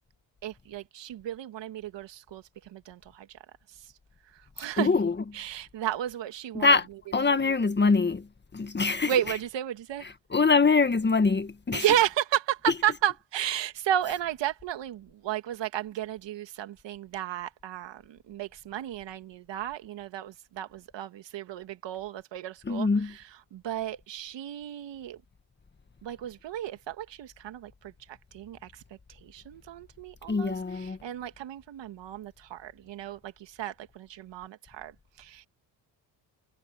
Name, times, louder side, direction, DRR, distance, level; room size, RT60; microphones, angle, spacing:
voice 1, 0.4-3.4 3.7-3.9 4.3-4.9 5.3-6.8 9.1-10.1 11.7-25.2 26.0-28.8 29.1-35.5, right 11 dB, 65° right, 1.9 m, -33 dB
voice 2, 4.8-5.1 6.6-6.9 7.1-9.1 10.3-11.8 22.7-23.1 30.3-31.0, left 4 dB, 20° left, 1.7 m, -24 dB
cardioid pair, 95°, 48 cm